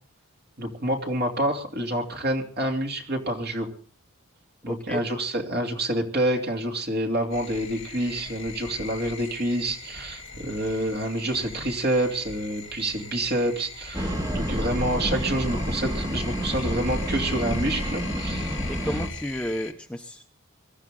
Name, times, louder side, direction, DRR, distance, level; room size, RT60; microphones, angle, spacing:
voice 1, 0.6-3.7 4.6-18.5, right 1 dB, 45° right, 1 dB, 3.0 m, -27 dB
voice 2, 4.7-5.0 18.7-20.3, equal, 5° left, 4 dB, 0.8 m, -32 dB
sound 1, 7.3-19.7, left 4 dB, 65° left, 2.0 m, -40 dB
sound 2, 13.9-19.1, equal, 20° right, 2.0 m, -29 dB
24.5 x 13.0 x 3.8 m, 0.44 s
head